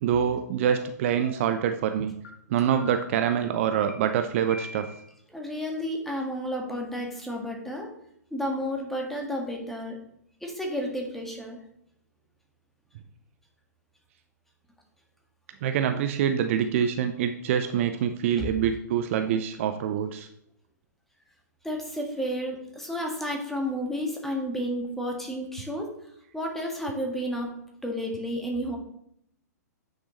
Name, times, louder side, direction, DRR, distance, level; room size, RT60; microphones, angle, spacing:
voice 1, 0.0-2.2 2.5-4.9 15.6-20.3, right 8 dB, 45° right, 8 dB, 0.6 m, -25 dB
sound 1, 0.7-0.8 1.2-1.6 2.2-2.3 2.8-3.2 3.9-4.0 4.5-5.1, left 1 dB, 60° left, 2.2 m, -43 dB
voice 2, 5.3-7.9 8.3-9.9 10.4-11.6 18.4-18.5 21.6-25.9 26.3-27.6 27.8-28.8, equal, 5° left, 0 dB, 1.7 m, -31 dB
9.4 x 6.5 x 3.1 m, 0.72 s
figure-of-eight pair, 115°, 9 cm